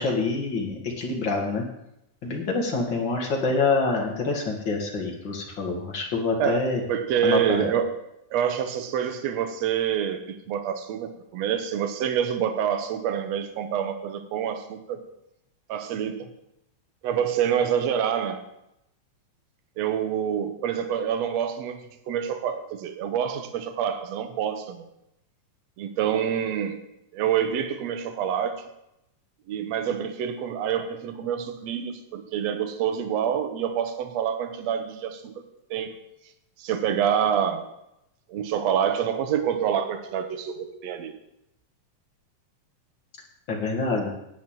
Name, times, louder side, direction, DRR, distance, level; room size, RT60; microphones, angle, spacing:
voice 1, 0.0-1.7 2.2-6.8 7.2-7.7 43.5-44.1, left 3 dB, 40° left, 0 dB, 2.1 m, -26 dB
voice 2, 6.4-7.9 8.3-15.0 15.7-16.3 17.0-18.4 19.8-21.8 22.1-24.8 25.8-26.8 27.1-28.7 29.5-35.4 35.7-36.1 36.6-37.6 38.3-41.1, right 8 dB, 65° right, 8 dB, 1.9 m, -27 dB
10.5 x 6.1 x 8.9 m, 0.83 s
omnidirectional pair, 3.9 m